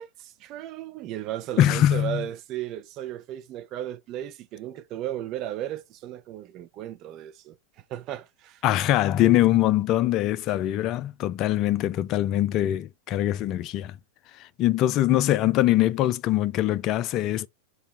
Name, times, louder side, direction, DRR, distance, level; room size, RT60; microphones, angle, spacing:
voice 1, 0.0-8.6, right 12 dB, 35° right, 0.5 m, -35 dB
voice 2, 1.6-2.2 8.6-14.0 14.3-17.5, left 13 dB, 35° left, 0.4 m, -23 dB
4.0 x 3.0 x 4.0 m
figure-of-eight pair, 90°, 0 cm